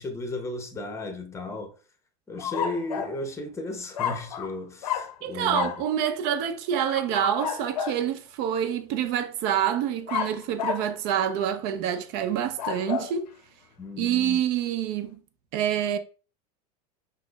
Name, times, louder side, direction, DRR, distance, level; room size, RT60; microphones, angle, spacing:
voice 1, 0.0-1.7 2.3-5.7 13.8-14.4, left 2 dB, 15° left, 0.7 m, -35 dB
sound 1, 2.4-3.2 3.9-4.5 4.8-5.2 5.5-5.8 6.8-8.0 10.1-10.9 12.4-13.1, left 8 dB, 90° left, 0.6 m, -31 dB
voice 2, 5.2-13.3 14.0-15.2 15.5-16.0, right 9 dB, 55° right, 0.4 m, -27 dB
5.9 x 2.0 x 2.2 m
hypercardioid pair, 105°, 20 cm